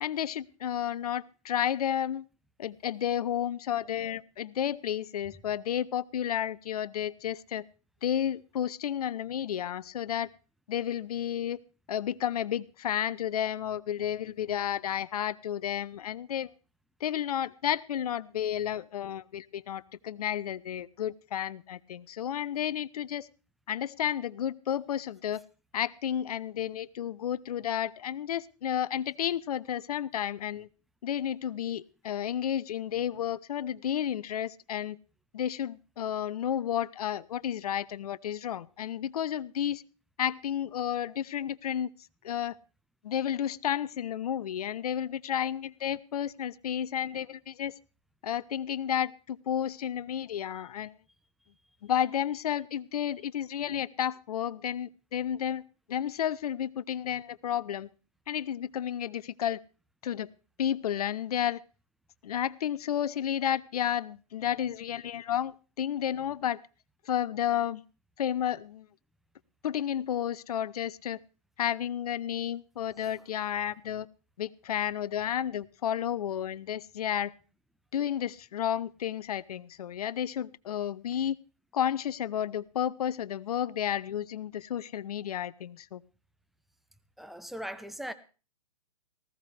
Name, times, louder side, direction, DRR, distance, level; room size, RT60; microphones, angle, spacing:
voice 1, 0.0-2.2 2.6-7.6 8.0-10.3 10.7-11.6 11.9-16.5 17.0-23.3 23.7-25.4 25.7-30.7 31.0-35.0 35.3-39.8 40.2-41.9 42.2-42.6 43.0-47.7 48.2-50.9 51.8-55.6 55.9-57.9 58.3-59.6 60.0-60.3 60.6-61.6 62.2-66.6 67.1-67.8 68.2-68.9 69.6-71.2 71.6-74.1 74.4-77.3 77.9-81.4 81.7-86.0, left 10 dB, 70° left, 0.6 m, -32 dB
voice 2, 87.2-88.1, equal, ahead, 0.7 m, -39 dB
18.5 x 14.0 x 3.3 m
hypercardioid pair, 130°, 20 cm